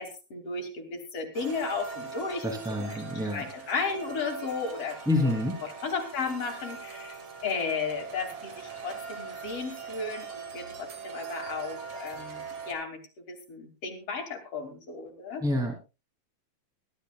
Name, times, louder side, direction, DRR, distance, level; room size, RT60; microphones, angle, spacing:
voice 1, 0.0-3.0 3.3-15.4, left 5 dB, 55° left, 2 dB, 3.7 m, -35 dB
sound 1, 1.3-12.8, right 6 dB, 65° right, 3.3 m, -41 dB
voice 2, 2.4-3.4 5.1-5.6 15.4-15.7, left 1 dB, ahead, 2 dB, 3.0 m, -27 dB
22.0 x 12.5 x 2.4 m, 0.29 s
omnidirectional pair, 3.3 m